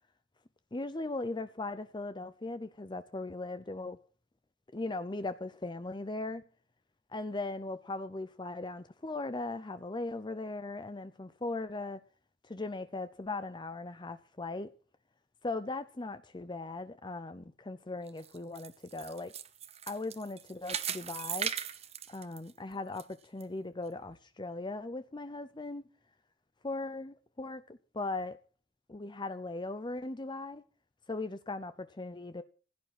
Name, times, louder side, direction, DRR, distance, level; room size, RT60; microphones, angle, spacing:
voice 1, 0.7-4.0 4.7-6.4 7.1-12.0 12.4-14.7 15.4-19.3 19.9-21.5 22.1-25.8 26.6-28.4 28.9-30.6 31.1-32.4, left 2 dB, 25° left, 0.6 m, -38 dB
sound 1, 18.1-23.0 23.4-23.5 24.1-24.2, right 8 dB, 35° right, 0.9 m, -38 dB
16.0 x 9.9 x 6.0 m
head